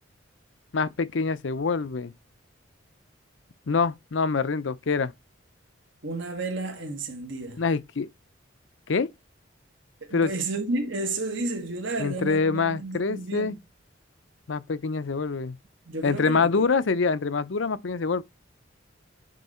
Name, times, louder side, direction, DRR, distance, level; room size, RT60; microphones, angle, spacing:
voice 1, 0.7-2.1 3.7-5.1 7.6-8.1 8.9-9.1 10.1-10.3 12.0-13.6 14.5-15.6 16.0-18.2, left 4 dB, 70° left, 0.6 m, -25 dB
voice 2, 6.0-7.6 10.0-13.6 15.9-16.6, right 2 dB, 70° right, 1.7 m, -32 dB
9.2 x 3.3 x 4.3 m
head